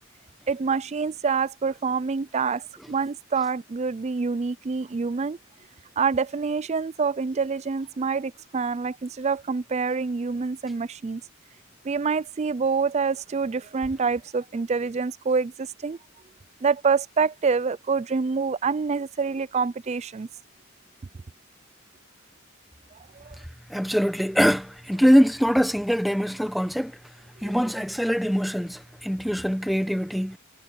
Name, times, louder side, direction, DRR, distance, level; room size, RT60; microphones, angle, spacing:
voice 1, 0.5-5.4 6.0-11.2 11.8-16.0 16.6-20.3 23.2-23.4, right 5 dB, 35° right, 0.4 m, -26 dB
voice 2, 23.7-27.0 27.4-30.4, equal, ahead, 1.3 m, -23 dB
head